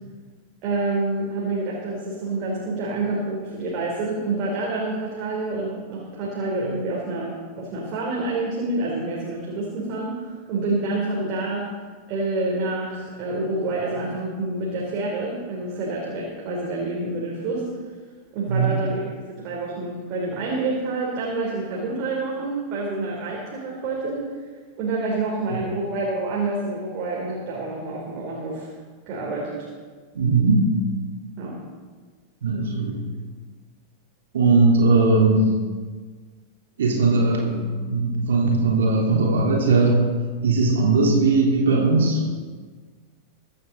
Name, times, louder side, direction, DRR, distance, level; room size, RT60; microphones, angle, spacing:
voice 1, 0.6-11.7 12.1-17.7 18.3-24.3 24.8-28.7 29.1-29.7 31.4-31.6, right 2 dB, 40° right, -4 dB, 3.4 m, -28 dB
voice 2, 30.1-30.7 32.4-33.0 34.3-35.5 36.8-40.1 40.4-42.3, right 3 dB, 65° right, -1 dB, 3.5 m, -19 dB
23.0 x 9.5 x 3.9 m, 1.5 s
figure-of-eight pair, 90°, 0 cm